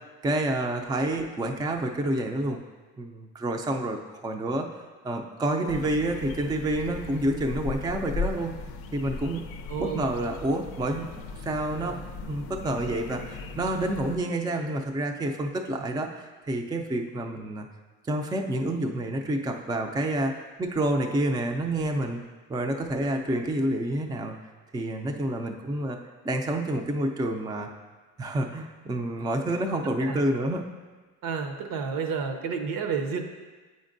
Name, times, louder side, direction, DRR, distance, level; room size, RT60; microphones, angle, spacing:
voice 1, 0.2-2.6 3.0-4.7 5.0-8.6 8.9-9.5 9.8-11.1 11.4-12.0 12.3-17.7 18.1-22.2 22.5-24.4 24.7-26.0 26.2-27.7 28.2-30.7, right 1 dB, 10° right, 3 dB, 0.4 m, -28 dB
sound 1, 5.7-14.2, left 4 dB, 75° left, 0.5 m, -37 dB
voice 2, 9.7-10.0 30.0-30.2 31.2-33.3, right 5 dB, 65° right, 5 dB, 0.8 m, -30 dB
8.1 x 5.2 x 2.6 m, 1.3 s
cardioid pair, 100°, 36 cm